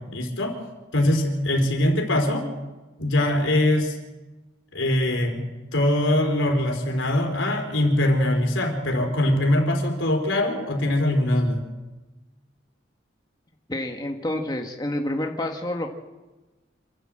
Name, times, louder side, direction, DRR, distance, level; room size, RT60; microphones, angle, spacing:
voice 1, 0.1-0.6 0.9-2.5 3.0-3.9 4.7-5.4 5.7-11.6, left 1 dB, 90° left, 4 dB, 4.2 m, -22 dB
voice 2, 13.7-15.9, left 1 dB, 20° left, 3 dB, 1.4 m, -28 dB
27.0 x 12.5 x 7.7 m, 1.2 s
head